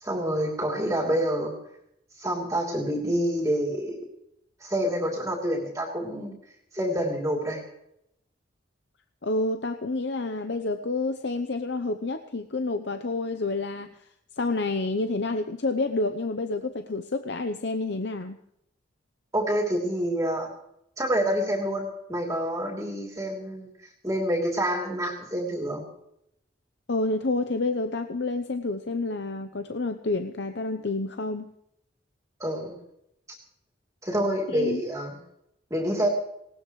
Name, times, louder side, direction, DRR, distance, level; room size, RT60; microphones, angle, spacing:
voice 1, 0.0-1.6 2.2-4.0 4.6-6.4 6.7-7.6 19.3-20.5 21.0-23.7 24.0-25.9 32.4-32.8 34.0-35.2 35.7-36.1, equal, 15° right, -1 dB, 3.1 m, -27 dB
voice 2, 9.2-14.0 14.4-18.4 26.9-31.5 34.5-34.8, left 3 dB, 60° left, 7 dB, 0.8 m, -29 dB
19.5 x 18.5 x 3.2 m, 0.77 s
head